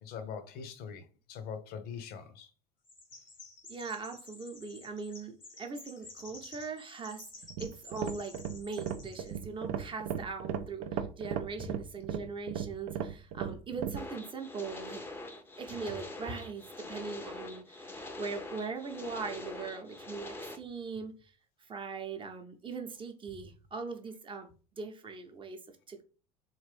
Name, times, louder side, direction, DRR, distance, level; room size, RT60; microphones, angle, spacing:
voice 1, 0.0-2.5, left 6 dB, 45° left, 0.7 m, -42 dB
Chirp tweet, 2.8-9.4, left 3 dB, 90° left, 1.3 m, -51 dB
voice 2, 3.7-7.2 7.6-15.0 15.6-21.1 21.7-24.5 24.8-25.6 25.9-26.0, right 4 dB, 25° right, 0.8 m, -40 dB
sound 1, 7.4-14.1, right 9 dB, 60° right, 0.5 m, -36 dB
sound 2, 14.0-20.6, left 2 dB, 10° left, 0.6 m, -44 dB
3.6 x 2.5 x 3.4 m
figure-of-eight pair, 70°, 21 cm